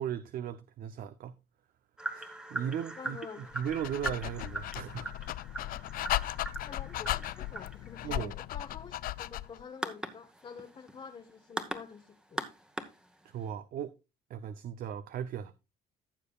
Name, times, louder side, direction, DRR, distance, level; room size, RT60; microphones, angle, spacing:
voice 1, 0.0-1.3 2.1-5.7 8.0-8.3 13.3-13.9 14.3-15.5, right 9 dB, 60° right, 0.6 m, -37 dB
sound 1, 2.0-13.5, right 2 dB, 5° right, 1.1 m, -41 dB
voice 2, 3.0-3.5 6.6-12.4, left 6 dB, 30° left, 0.9 m, -48 dB
Dog, 3.5-9.6, left 14 dB, 60° left, 0.4 m, -36 dB
15.0 x 6.7 x 2.3 m
cardioid pair, 110°, 17 cm